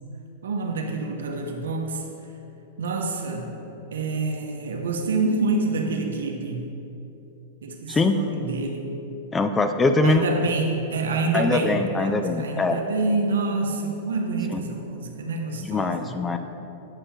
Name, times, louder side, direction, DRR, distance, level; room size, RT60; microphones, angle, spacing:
voice 1, 0.4-2.0 2.8-3.6 3.9-6.7 7.6-8.9 10.0-16.1, right 3 dB, 75° right, 2 dB, 0.8 m, -27 dB
voice 2, 9.3-10.2 11.3-12.8 15.6-16.4, left 3 dB, 15° left, 7 dB, 0.4 m, -22 dB
8.9 x 5.5 x 2.9 m, 3.0 s
hypercardioid pair, 105°, 0 cm